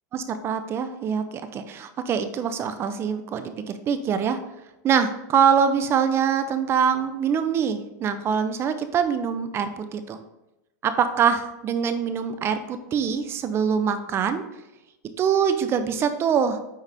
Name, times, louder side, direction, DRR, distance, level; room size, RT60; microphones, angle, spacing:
voice 1, 0.1-4.4 4.8-10.2 10.8-14.4 15.2-16.6, right 7 dB, 25° right, 10 dB, 0.6 m, -24 dB
9.1 x 4.0 x 3.5 m, 0.93 s
supercardioid pair, 145°, 10 cm